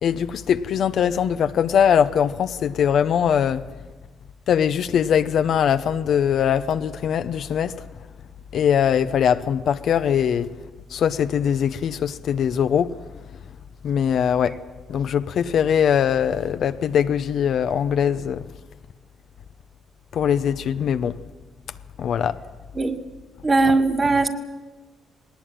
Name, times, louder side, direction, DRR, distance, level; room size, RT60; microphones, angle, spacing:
voice 1, 0.0-3.6 4.5-7.7 8.5-10.5 10.9-12.9 13.8-14.6 14.9-18.4 20.1-21.2 22.0-22.4, left 8 dB, 65° left, 0.8 m, -21 dB
voice 2, 23.4-24.3, right 3 dB, 30° right, 1.9 m, -19 dB
19.5 x 18.5 x 9.0 m
cardioid pair, 90°, 0 cm